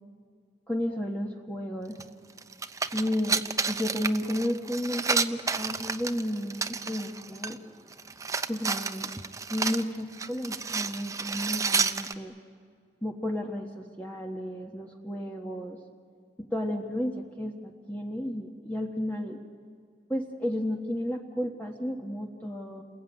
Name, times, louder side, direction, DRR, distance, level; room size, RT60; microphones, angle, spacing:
voice 1, 0.7-2.0 2.9-7.6 8.5-9.1 9.5-12.3 13.0-15.8 16.5-19.4 20.1-22.8, equal, 10° left, 0 dB, 1.4 m, -32 dB
sound 1, 2.0-2.1 2.4-7.6 7.9-12.1, right 4 dB, 20° right, 0.8 m, -31 dB
30.0 x 21.5 x 9.5 m, 2.2 s
head